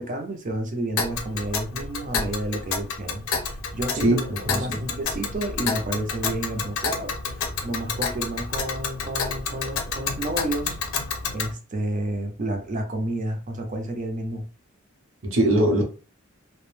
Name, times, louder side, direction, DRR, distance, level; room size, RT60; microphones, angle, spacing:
voice 1, 0.0-7.2 7.6-10.8 11.3-14.5, right 1 dB, 35° right, 0.5 m, -30 dB
Tick, 1.0-11.5, left 5 dB, 80° left, 0.5 m, -30 dB
voice 2, 4.0-4.8 15.2-15.8, right 1 dB, 70° right, 0.8 m, -22 dB
2.3 x 2.1 x 3.1 m
head